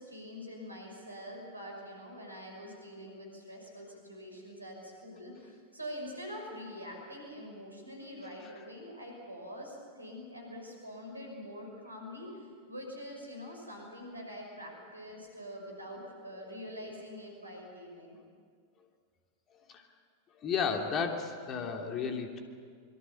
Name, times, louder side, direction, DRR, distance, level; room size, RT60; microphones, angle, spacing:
voice 1, 0.0-18.2, equal, 85° right, 1 dB, 5.8 m, -45 dB
voice 2, 20.3-22.4, left 6 dB, 30° left, 3 dB, 3.1 m, -33 dB
25.0 x 23.0 x 7.1 m, 2.1 s
figure-of-eight pair, 90°, 0 cm